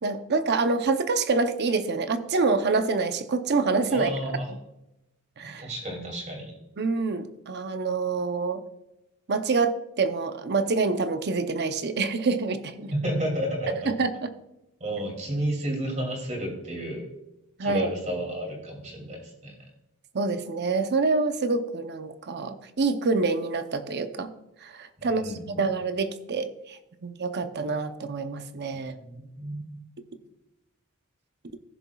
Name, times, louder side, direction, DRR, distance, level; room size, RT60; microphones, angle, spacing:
voice 1, 0.0-4.1 5.4-5.6 6.8-8.6 9.3-12.9 13.9-14.3 17.6-17.9 20.1-24.3 24.6-28.9, right 4 dB, 50° right, 9 dB, 0.7 m, -26 dB
voice 2, 3.9-4.5 5.4-6.6 12.9-13.9 14.8-17.1 17.6-19.5 25.0-25.7 28.9-29.8, right 1 dB, 35° right, 0 dB, 2.6 m, -32 dB
15.0 x 7.0 x 2.3 m, 0.90 s
head